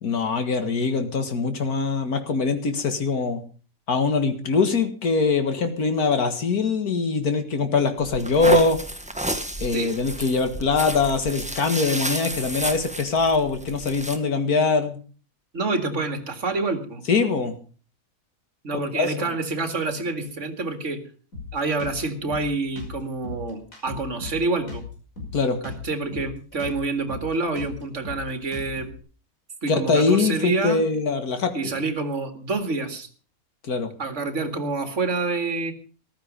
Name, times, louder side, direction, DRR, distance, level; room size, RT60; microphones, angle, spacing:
voice 1, 0.0-3.4 3.9-8.8 9.6-15.0 17.1-17.6 18.9-19.3 25.3-25.6 29.7-31.8 33.6-33.9, left 4 dB, 90° left, 7 dB, 2.2 m, -23 dB
sound 1, 8.0-14.2, right 1 dB, 5° right, 1.3 m, -31 dB
voice 2, 15.5-17.0 18.6-21.0 21.5-24.8 25.6-29.0 29.6-30.8 31.5-33.1 34.0-35.7, right 3 dB, 55° right, 7 dB, 2.4 m, -27 dB
Drum kit, 21.3-29.0, left 4 dB, 65° left, 6.0 m, -37 dB
14.5 x 13.0 x 5.2 m, 0.39 s
omnidirectional pair, 1.5 m